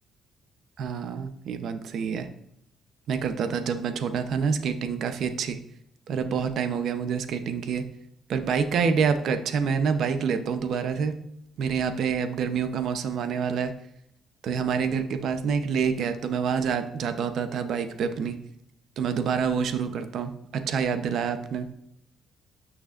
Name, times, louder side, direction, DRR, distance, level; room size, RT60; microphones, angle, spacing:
voice 1, 0.8-2.3 3.1-5.6 6.1-7.8 8.3-11.2 11.6-13.7 14.4-18.4 19.0-21.7, right 6 dB, 70° right, 9 dB, 0.8 m, -27 dB
12.5 x 6.2 x 2.6 m, 0.75 s
cardioid pair, 90°, 0 cm